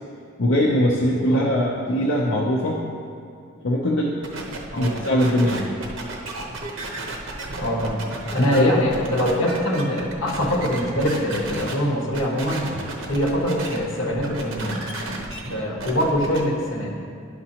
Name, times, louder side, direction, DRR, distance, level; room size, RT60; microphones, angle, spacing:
voice 1, 0.4-2.8 3.6-4.2 4.8-5.7 8.4-8.9, equal, 85° left, -3 dB, 0.7 m, -21 dB
sound 1, 4.2-11.7 12.1-13.8 14.1-16.4, right 2 dB, 75° right, 0.9 m, -33 dB
voice 2, 7.6-8.0 8.3-12.7 13.1-14.8 15.5-16.9, equal, 70° left, -1 dB, 1.4 m, -23 dB
11.0 x 5.9 x 2.9 m, 2.3 s
head